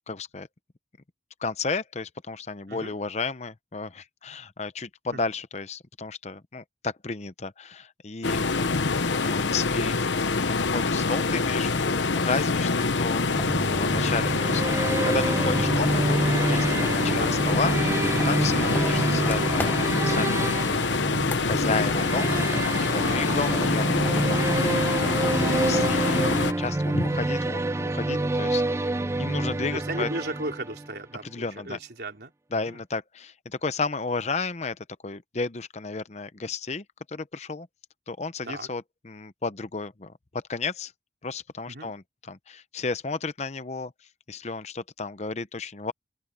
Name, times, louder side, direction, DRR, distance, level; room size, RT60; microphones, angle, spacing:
voice 1, 0.1-0.5 1.4-8.4 9.1-10.0 10.3-20.5 20.9-21.0 21.4-25.2 25.5-26.3 26.6-30.1 31.2-31.8 32.5-37.7 38.1-40.9 41.2-43.9 44.3-45.9, left 4 dB, 35° left, 0.7 m, -33 dB
sound 1, 8.2-26.5, left 4 dB, 85° left, 1.0 m, -25 dB
sound 2, 13.2-30.9, right 2 dB, 15° right, 0.3 m, -27 dB
voice 2, 16.4-16.8 17.1-17.3 23.0-23.2 29.7-32.8 38.4-38.7 41.7-41.9, right 2 dB, 60° right, 4.0 m, -36 dB
sound 3, 27.4-27.5, left 1 dB, 10° left, 0.9 m, -43 dB
open air
head